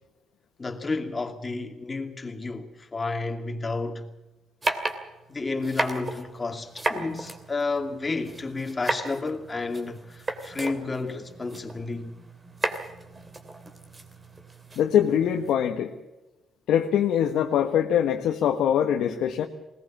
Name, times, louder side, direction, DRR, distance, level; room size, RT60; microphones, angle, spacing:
voice 1, 0.6-4.1 5.3-12.1, left 3 dB, 25° left, 2.5 m, -31 dB
sound 1, 4.6-15.5, right 2 dB, 25° right, 2.8 m, -35 dB
voice 2, 14.8-15.9 16.7-19.5, left 9 dB, 80° left, 1.3 m, -23 dB
20.5 x 19.0 x 7.4 m
cardioid pair, 90°, 0 cm